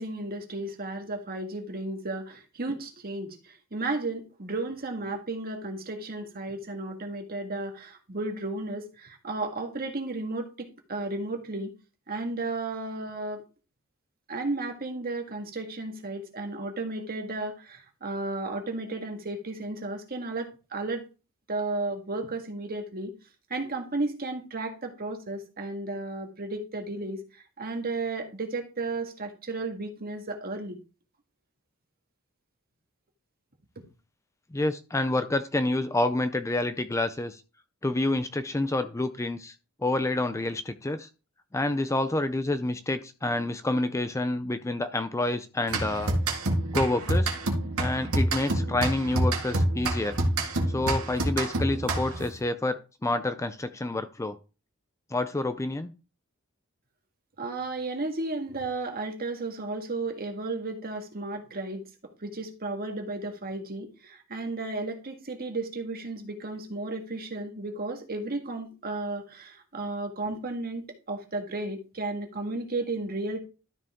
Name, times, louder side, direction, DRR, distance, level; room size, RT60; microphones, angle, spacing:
voice 1, 0.0-11.7 12.1-13.4 14.3-21.1 21.5-23.1 23.5-27.2 27.6-30.8 57.4-61.8 62.2-73.4, right 2 dB, 45° right, 4 dB, 1.7 m, -33 dB
voice 2, 34.5-37.4 37.8-39.5 39.8-41.1 41.5-46.1 46.7-47.3 47.8-50.2 50.7-54.4 55.1-55.9, left 2 dB, 15° left, 10 dB, 0.5 m, -28 dB
sound 1, 45.7-52.3, right 1 dB, 70° right, 1.9 m, -27 dB
12.5 x 5.1 x 3.6 m, 0.32 s
head